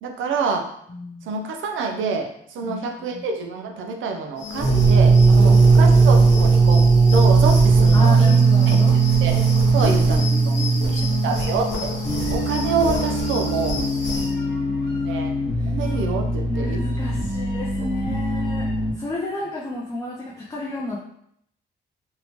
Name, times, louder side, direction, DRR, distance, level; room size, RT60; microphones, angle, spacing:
voice 1, 0.0-0.7 1.3-6.8 7.1-8.4 8.7-8.8 9.2-9.3 9.7-10.5 10.9-11.9 12.3-13.8 14.9-15.3 15.7-16.8, right 4 dB, 85° right, 3 dB, 0.5 m, -27 dB
voice 2, 0.9-1.3 2.6-2.8 3.1-3.2 5.4-5.6 7.9-8.9 9.7-11.3 13.9-15.1 15.6-15.7 16.4-18.7 19.0-21.0, left 2 dB, 20° left, -4 dB, 0.4 m, -32 dB
sound 1, 4.4-14.3, left 3 dB, 70° left, 0.9 m, -29 dB
sound 2, 4.6-12.3, right 4 dB, 25° right, 0.8 m, -16 dB
sound 3, 12.0-18.9, left 1 dB, 45° left, 1.0 m, -25 dB
2.7 x 2.0 x 2.9 m, 0.70 s
cardioid pair, 120°, 20 cm